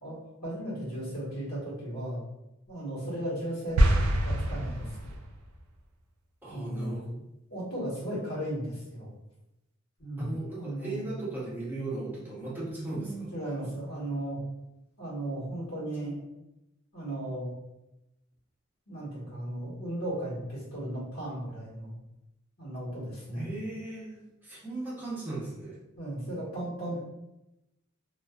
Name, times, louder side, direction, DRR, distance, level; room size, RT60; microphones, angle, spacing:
voice 1, 0.0-2.2 2.7-5.1 6.5-7.0 7.5-9.1 10.0-10.3 10.6-11.0 12.9-14.4 15.0-16.2 16.9-17.5 18.9-22.0 22.6-23.5 26.0-27.0, right 1 dB, 75° left, -8 dB, 1.2 m, -36 dB
sound 1, 3.8-5.4, right 1 dB, 75° right, 0.4 m, -25 dB
voice 2, 6.4-7.2 10.2-13.3 23.4-24.2 24.4-25.8, right 2 dB, 10° right, -8 dB, 0.8 m, -37 dB
2.4 x 2.3 x 2.3 m, 0.92 s
head